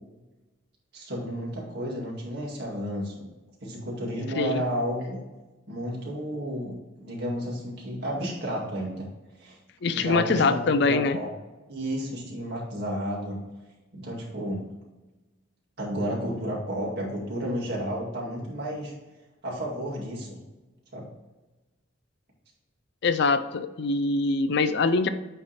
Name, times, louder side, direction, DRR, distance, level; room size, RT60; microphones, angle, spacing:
voice 1, 0.9-3.3 3.6-5.2 5.7-9.1 9.4-9.6 9.9-11.3 11.7-13.4 13.9-14.6 15.8-18.9 19.4-20.4 20.9-21.1, equal, 55° right, -4 dB, 2.1 m, -32 dB
voice 2, 9.8-11.2 23.0-25.1, left 3 dB, 60° left, 11 dB, 0.4 m, -23 dB
8.9 x 3.4 x 4.1 m, 1.1 s
head